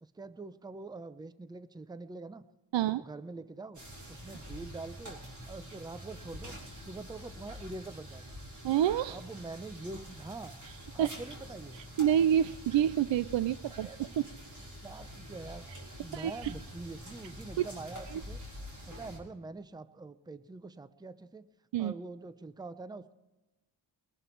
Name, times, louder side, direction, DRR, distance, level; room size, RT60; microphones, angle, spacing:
voice 1, 0.0-2.5 2.8-3.8 4.1-5.2 5.5-6.6 6.8-8.4 9.1-10.5 10.9-11.8 13.7-14.0 14.8-15.7 16.0-18.4 18.9-21.5 21.8-23.1, right 3 dB, 10° right, 13 dB, 0.6 m, -44 dB
sound 1, 3.7-19.2, equal, 40° right, 3.9 m, -46 dB
voice 2, 8.6-9.2 11.0-11.1 12.0-13.9 14.2-14.3 16.1-16.5 17.6-17.7 18.1-18.2 21.7-21.9, right 10 dB, 75° right, 14 dB, 0.5 m, -27 dB
21.0 x 11.0 x 4.5 m, 1.1 s
wide cardioid pair, 100°, 45 cm